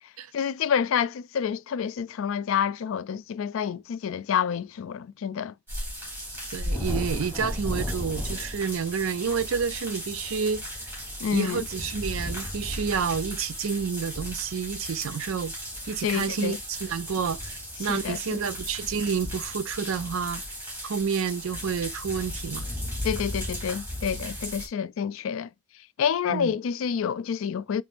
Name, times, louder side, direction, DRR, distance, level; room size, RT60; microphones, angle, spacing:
voice 1, 0.3-5.5 11.2-11.6 16.0-16.6 17.9-18.4 23.0-25.5 26.0-27.8, left 7 dB, 70° left, 0.3 m, -28 dB
sound 1, 5.7-24.7, equal, 10° right, 2.4 m, -35 dB
voice 2, 6.5-10.6 11.3-15.5 15.9-20.4 20.8-22.7 26.3-26.6, right 6 dB, 80° right, 0.4 m, -29 dB
5.2 x 3.1 x 2.5 m
head